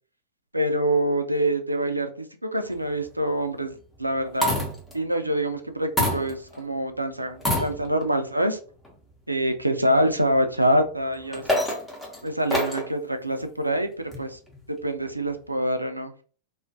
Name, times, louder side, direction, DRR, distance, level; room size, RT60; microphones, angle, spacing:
voice 1, 0.5-4.6 4.9-8.6 9.3-11.6 12.2-14.4 14.7-16.1, right 1 dB, 85° right, 7 dB, 0.3 m, -25 dB
sound 1, 2.7-3.1 4.1-5.0 6.0-6.7 7.4-8.1 8.8-8.9 11.1-12.9 14.1-14.6, left 1 dB, 5° left, 0.7 m, -27 dB
2.3 x 2.1 x 2.5 m, 0.41 s
figure-of-eight pair, 90°, 0 cm